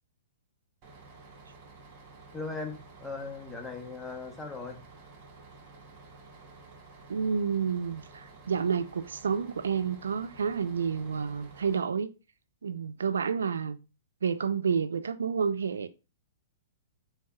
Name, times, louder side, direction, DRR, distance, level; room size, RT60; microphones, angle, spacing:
Bus, 0.8-11.8, right 3 dB, 40° right, 0.9 m, -52 dB
voice 1, 2.3-4.8, left 3 dB, 10° left, 0.9 m, -38 dB
voice 2, 7.1-12.1 12.6-13.8 14.2-15.9, right 6 dB, 85° right, 0.3 m, -29 dB
4.3 x 2.9 x 2.3 m
hypercardioid pair, 125°, 0 cm